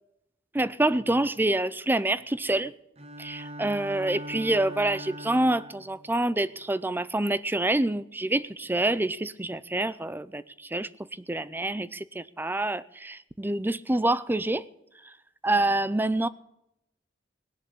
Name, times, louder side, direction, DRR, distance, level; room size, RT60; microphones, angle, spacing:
voice 1, 0.5-2.7 3.2-10.4 10.7-10.9 11.3-14.6 15.4-16.3, right 1 dB, 10° right, 0.5 m, -26 dB
Bowed string instrument, 3.0-6.0, equal, 35° right, 1.5 m, -41 dB
19.5 x 7.2 x 8.5 m
head